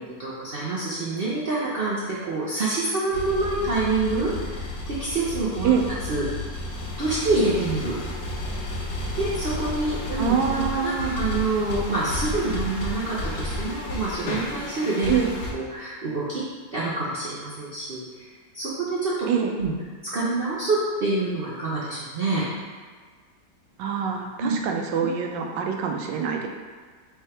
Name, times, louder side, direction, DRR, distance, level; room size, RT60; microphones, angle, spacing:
voice 1, 0.2-5.7 6.1-6.3 7.0-8.0 9.1-15.2 15.5-16.4 16.7-18.3 18.5-19.3 19.6-19.7 20.0-22.5 24.4-24.6, right 3 dB, 65° right, -8 dB, 0.5 m, -26 dB
sound 1, 3.1-15.5, left 2 dB, 60° left, 1.1 m, -32 dB
voice 2, 10.2-11.2 15.1-15.4 19.3-19.5 23.8-26.5, right 7 dB, 90° right, 3 dB, 1.3 m, -25 dB
3.5 x 3.4 x 4.3 m, 1.5 s
omnidirectional pair, 1.9 m